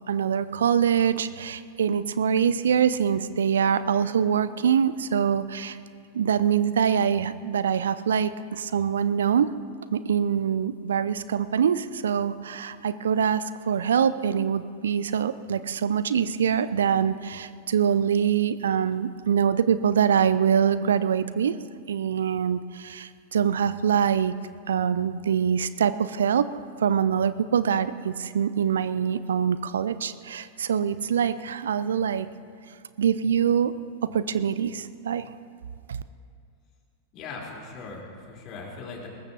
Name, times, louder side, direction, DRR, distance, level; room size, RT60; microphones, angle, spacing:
voice 1, 0.1-5.8 6.1-9.5 9.9-21.6 21.9-24.3 24.7-32.3 33.0-33.7 34.1-35.2 35.9-36.0, right 8 dB, 65° right, 15 dB, 0.4 m, -24 dB
voice 2, 37.1-39.1, left 4 dB, 35° left, -1 dB, 3.8 m, -39 dB
21.5 x 19.5 x 2.8 m, 2.2 s
figure-of-eight pair, 90°, 0 cm